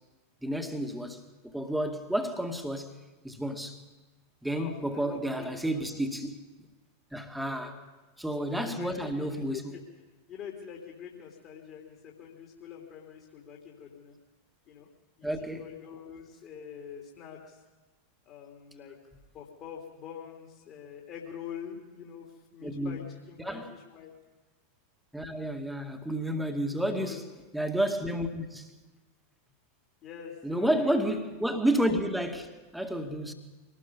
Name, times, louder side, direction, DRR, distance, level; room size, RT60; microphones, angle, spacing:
voice 1, 0.4-2.9 3.2-3.8 4.4-6.4 7.1-7.8 8.2-9.6 15.2-15.7 22.6-23.0 23.4-23.7 25.1-27.2 27.5-28.8 30.4-33.3, right 1 dB, ahead, 2.2 m, -31 dB
voice 2, 4.5-5.8 7.4-7.8 8.5-9.8 10.3-14.1 14.7-14.9 15.2-17.6 18.2-19.0 19.3-22.3 22.5-24.1 26.9-27.2 30.0-31.3, left 7 dB, 35° left, 3.4 m, -45 dB
24.5 x 19.0 x 5.5 m
figure-of-eight pair, 90°, 0 cm